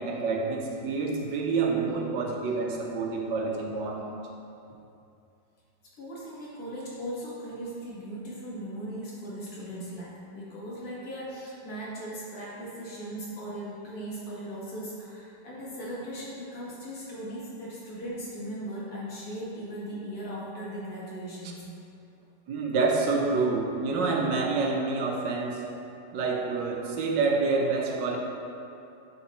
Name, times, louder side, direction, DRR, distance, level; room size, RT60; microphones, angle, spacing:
voice 1, 0.0-4.1 22.5-25.6 26.1-28.2, right 4 dB, 85° right, 0 dB, 1.4 m, -27 dB
voice 2, 6.0-21.7, right 1 dB, 60° left, -7 dB, 2.0 m, -38 dB
10.5 x 4.1 x 3.0 m, 2.7 s
omnidirectional pair, 1.9 m